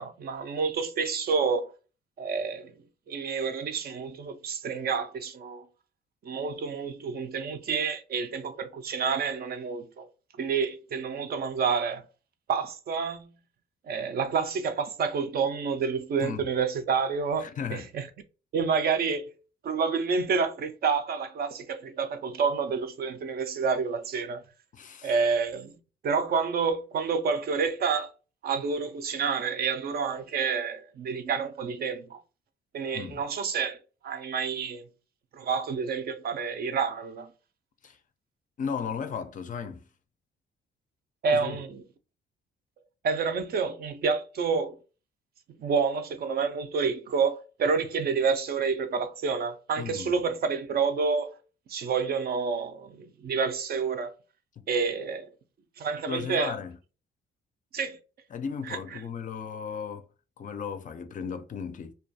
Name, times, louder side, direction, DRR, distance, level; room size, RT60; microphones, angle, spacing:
voice 1, 0.0-1.7 2.2-2.7 3.1-5.6 6.2-10.1 10.4-12.0 12.5-13.3 13.9-18.1 18.5-19.3 19.6-24.4 25.0-25.7 26.0-28.1 28.4-32.2 32.7-33.8 34.0-34.8 35.3-37.3 41.2-41.8 43.0-44.8 45.6-51.3 51.7-54.1 54.7-55.3 55.8-56.5 57.7-58.0 58.7-59.0, right 5 dB, 50° right, 0.4 m, -29 dB
voice 2, 17.4-17.9 24.7-25.1 32.9-33.2 37.8-38.0 38.6-39.8 41.3-41.6 49.8-50.2 54.6-54.7 56.1-56.8 58.3-60.0 60.4-61.9, left 6 dB, 40° left, 0.4 m, -35 dB
2.3 x 2.3 x 2.6 m
cardioid pair, 90°, 20 cm